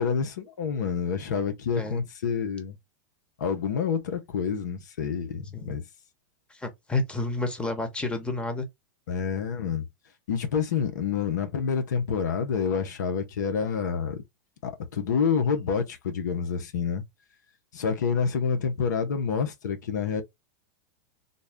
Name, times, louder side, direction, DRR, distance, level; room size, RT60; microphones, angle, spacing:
voice 1, 0.0-2.8 3.4-5.8 9.1-9.8 10.3-14.2 14.6-17.0 17.7-20.2, left 6 dB, 80° left, 0.8 m, -28 dB
voice 2, 6.5-8.7, left 2 dB, 10° left, 1.1 m, -30 dB
3.9 x 2.2 x 3.5 m
hypercardioid pair, 115°, 10 cm